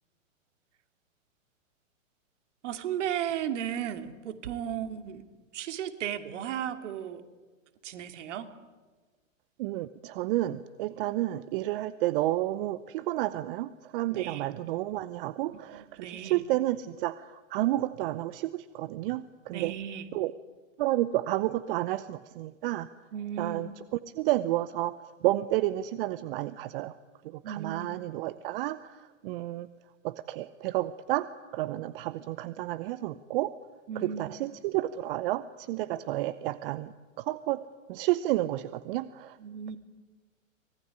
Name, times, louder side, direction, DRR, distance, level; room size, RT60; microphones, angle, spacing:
voice 1, 2.6-5.2 5.5-7.2 7.8-8.5 14.1-14.5 15.5-16.4 19.5-20.1 23.1-23.7 27.4-27.9 33.9-34.3 35.9-36.0 39.4-39.8, right 9 dB, 60° right, 8 dB, 2.6 m, -35 dB
voice 2, 9.6-19.7 20.1-20.3 20.8-22.9 23.4-24.9 25.2-26.9 27.2-29.7 30.0-31.3 31.5-33.5 33.9-37.6 37.9-39.4, right 15 dB, 45° right, 15 dB, 0.9 m, -31 dB
25.0 x 19.5 x 9.9 m, 1.3 s
hypercardioid pair, 115°, 40 cm